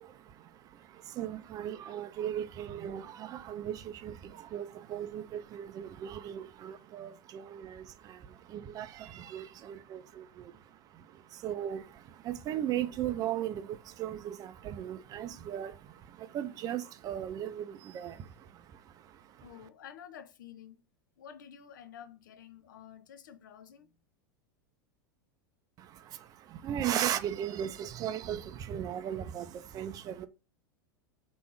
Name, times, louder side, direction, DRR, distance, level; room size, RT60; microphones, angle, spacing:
voice 1, 0.0-19.7 25.8-30.3, right 10 dB, 35° right, 0.5 m, -38 dB
voice 2, 19.2-20.8 21.2-24.0, left 9 dB, 65° left, 0.6 m, -50 dB
3.4 x 3.0 x 4.6 m
figure-of-eight pair, 90°, 11 cm